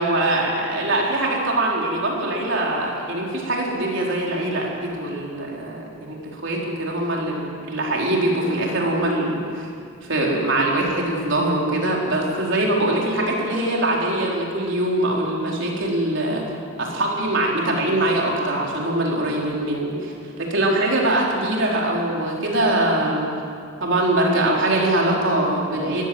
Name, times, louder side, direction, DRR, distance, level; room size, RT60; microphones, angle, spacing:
voice 1, 0.0-9.7 10.1-16.4 16.8-23.3 23.8-26.0, right 1 dB, 65° right, -2 dB, 4.5 m, -22 dB
21.0 x 16.0 x 8.0 m, 2.3 s
head